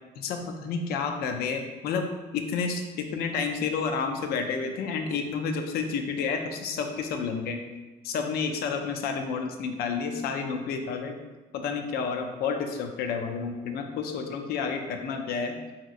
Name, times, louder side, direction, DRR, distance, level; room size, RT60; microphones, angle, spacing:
voice 1, 0.2-2.1 2.3-2.8 3.1-7.6 8.0-11.1 11.6-15.5, left 5 dB, 70° left, 5 dB, 0.4 m, -30 dB
3.1 x 2.8 x 2.4 m, 1.2 s
cardioid pair, 110°, 17 cm